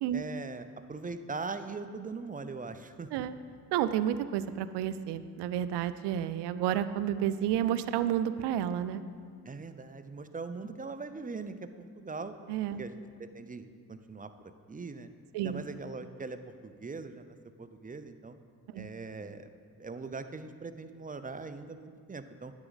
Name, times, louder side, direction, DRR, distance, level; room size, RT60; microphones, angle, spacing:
voice 1, 0.1-3.1 9.4-11.7 12.0-12.3 12.8-12.9 13.2-14.3 14.7-15.1 15.4-18.4 18.7-19.5 19.8-22.5, right 4 dB, 20° right, 10 dB, 0.5 m, -41 dB
voice 2, 3.7-9.0 12.5-12.8 15.3-15.6 18.7-18.9, right 10 dB, 75° right, 12 dB, 0.5 m, -30 dB
9.6 x 7.2 x 4.0 m, 2.1 s
supercardioid pair, 50°, 41 cm